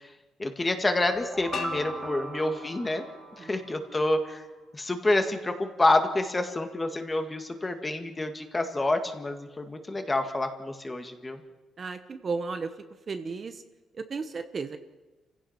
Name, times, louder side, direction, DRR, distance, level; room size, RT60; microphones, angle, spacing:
voice 1, 0.4-3.0 3.4-4.4 4.7-11.4, left 2 dB, 20° left, 6 dB, 1.9 m, -28 dB
sound 1, 0.8-3.9, right 2 dB, 10° right, 1.1 m, -39 dB
sound 2, 1.5-4.4, left 5 dB, 60° left, 2.4 m, -42 dB
voice 2, 11.8-12.7 13.1-13.6 13.9-14.8, right 4 dB, 35° right, 8 dB, 1.1 m, -34 dB
28.5 x 16.0 x 5.9 m, 1.2 s
cardioid pair, 130°, 0 cm